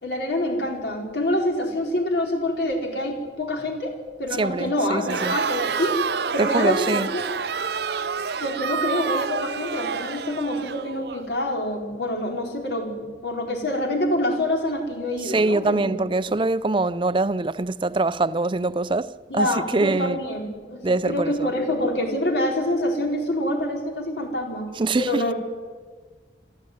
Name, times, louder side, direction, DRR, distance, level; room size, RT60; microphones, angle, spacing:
voice 1, 0.0-3.9 4.2-6.0 6.3-7.3 8.4-15.9 19.3-24.7 25.0-25.3, left 1 dB, 70° left, 4.6 m, -26 dB
voice 2, 4.4-5.4 6.4-7.1 15.2-19.5 19.7-20.2 20.8-21.5 24.8-25.2, right 2 dB, 30° right, 0.5 m, -24 dB
Crowd, 5.0-11.2, right 6 dB, 65° right, 0.7 m, -28 dB
25.0 x 13.5 x 9.4 m
head